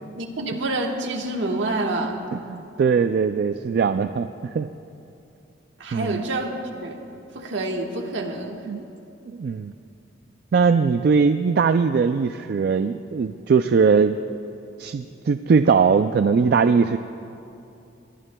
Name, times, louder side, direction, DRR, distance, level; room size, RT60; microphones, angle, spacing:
voice 1, 0.2-2.2 5.8-6.5 6.8-7.0 7.3-8.6, right 2 dB, 70° right, 2 dB, 1.4 m, -27 dB
voice 2, 2.3-4.3 4.5-4.7 5.9-6.2 8.7-8.8 9.3-9.7 10.5-14.2 14.8-17.0, right 5 dB, 50° right, 9 dB, 0.3 m, -20 dB
22.5 x 20.0 x 2.2 m, 2.7 s
head